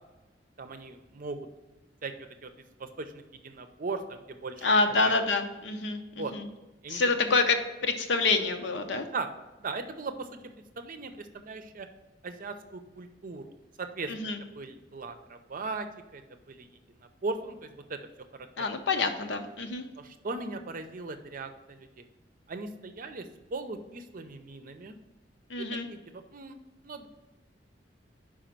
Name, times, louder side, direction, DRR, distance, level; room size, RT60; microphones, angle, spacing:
voice 1, 0.6-1.4 2.0-2.1 2.4-2.5 2.8-4.7 5.0-5.1 6.2-6.3 6.8-7.3 9.1-9.3 9.6-10.4 10.8-11.9 12.2-15.9 16.1-16.2 16.5-16.7 17.2-18.0 18.6-18.7 20.0-22.0 22.5-23.3 23.5-25.0 25.6-26.6 26.8-27.1, right 3 dB, 50° right, 8 dB, 0.6 m, -38 dB
voice 2, 4.6-6.5 6.9-9.1 14.1-14.4 18.6-19.8 25.5-25.9, left 3 dB, 75° left, 6 dB, 0.7 m, -27 dB
5.1 x 4.8 x 5.9 m, 1.1 s
head